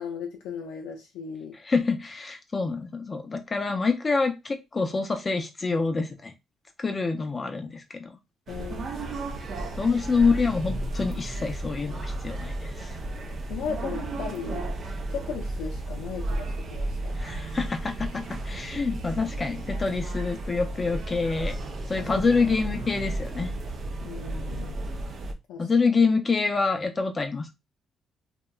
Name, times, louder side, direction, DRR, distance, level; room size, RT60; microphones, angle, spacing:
voice 1, 0.0-1.5 8.5-9.0 13.5-14.7 15.1-17.1 22.0-22.2 24.0-24.8 25.5-25.7, left 6 dB, 90° left, 0.4 m, -36 dB
voice 2, 1.5-6.3 6.8-8.1 9.8-13.0 17.1-21.6 21.9-23.5 25.6-27.5, left 4 dB, 30° left, 0.4 m, -26 dB
sound 1, 8.5-25.3, right 2 dB, 55° right, 0.5 m, -33 dB
2.8 x 2.1 x 2.3 m
cardioid pair, 90°, 0 cm